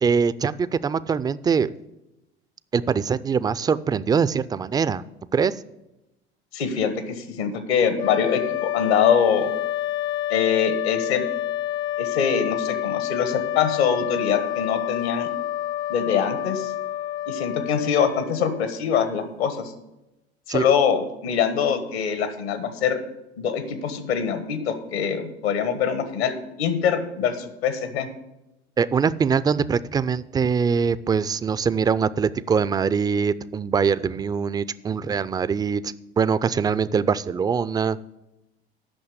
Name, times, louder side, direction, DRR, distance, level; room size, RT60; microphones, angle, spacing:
voice 1, 0.0-1.7 2.7-5.0 5.3-5.5 20.5-20.7 28.8-35.8 36.2-38.0, right 6 dB, 15° right, 17 dB, 0.3 m, -23 dB
voice 2, 6.5-9.5 10.3-11.2 12.0-15.3 15.9-16.7 17.3-19.6 20.5-23.0 23.4-28.1, left 7 dB, 75° left, 10 dB, 1.5 m, -24 dB
sound 1, 7.9-18.9, left 12 dB, 40° left, 0.6 m, -28 dB
8.7 x 6.2 x 8.2 m, 0.92 s
hypercardioid pair, 80°, 32 cm